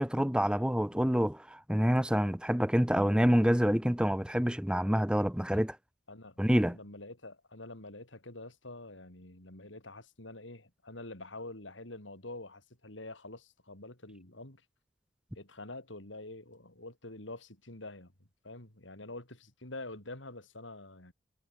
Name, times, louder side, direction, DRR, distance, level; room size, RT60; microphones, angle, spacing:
voice 1, 0.0-5.8 6.4-6.8, equal, 5° right, 1.0 m, -27 dB
voice 2, 6.1-14.6 15.3-18.1 18.4-21.1, left 2 dB, 85° left, 4.9 m, -46 dB
head